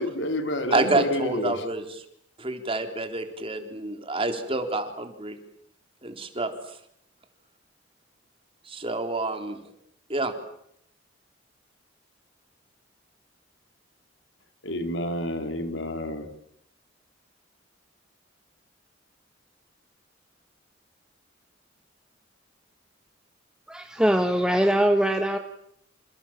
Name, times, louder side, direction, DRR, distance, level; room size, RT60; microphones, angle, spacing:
voice 1, 0.0-1.6 14.6-16.3, left 1 dB, 75° left, 7 dB, 4.1 m, -29 dB
voice 2, 0.7-2.1 2.4-5.4 6.0-6.8 8.7-9.6 10.1-10.3, right 2 dB, 30° right, 7 dB, 3.7 m, -28 dB
voice 3, 23.7-25.4, right 1 dB, 5° right, 5 dB, 1.5 m, -22 dB
28.0 x 28.0 x 7.5 m, 0.73 s
head